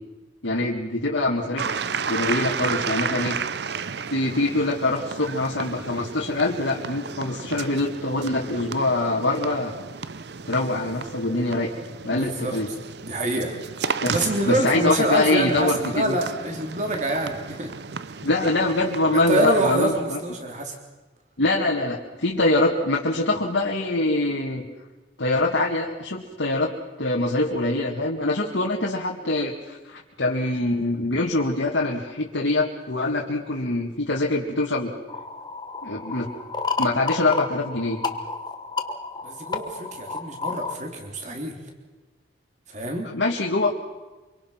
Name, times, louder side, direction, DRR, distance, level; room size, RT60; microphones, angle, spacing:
voice 1, 0.4-1.7 2.1-3.4 4.1-9.7 10.5-11.7 12.0-12.7 14.0-16.2 18.2-20.2 21.4-24.6 25.2-26.7 27.0-34.9 35.8-36.3 36.8-38.0 43.0-43.7, left 2 dB, 80° left, -2 dB, 2.1 m, -24 dB
sound 1, 1.6-19.8, right 5 dB, 60° right, 0.7 m, -33 dB
voice 2, 12.1-12.6 13.0-13.6 14.1-17.7 19.1-20.8 39.2-41.6 42.7-43.1, right 2 dB, 40° right, 2 dB, 3.5 m, -26 dB
sound 2, 35.1-40.8, left 4 dB, 20° left, 1.3 m, -31 dB
26.0 x 23.5 x 5.9 m, 1.2 s
head